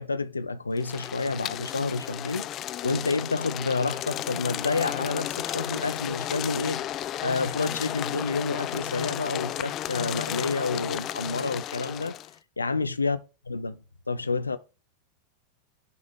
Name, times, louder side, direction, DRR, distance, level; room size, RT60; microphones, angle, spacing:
voice 1, 0.0-2.5 2.8-6.8 7.2-12.1 12.6-13.2 13.5-14.6, left 3 dB, 80° left, 0.6 m, -29 dB
sound 1, 0.8-12.3, left 12 dB, 35° left, 0.3 m, -33 dB
6.8 x 5.0 x 5.3 m
figure-of-eight pair, 90°, 0 cm